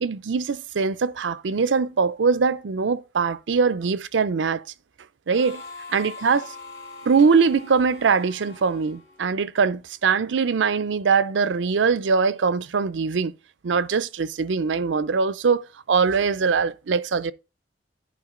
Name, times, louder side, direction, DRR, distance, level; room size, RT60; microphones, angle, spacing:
voice 1, 0.0-4.6 5.3-5.6 5.9-6.4 7.1-13.3 13.6-17.3, right 5 dB, 85° right, 0.5 m, -22 dB
Harmonica, 5.3-9.8, left 3 dB, 60° left, 2.1 m, -43 dB
10.0 x 5.0 x 3.7 m
head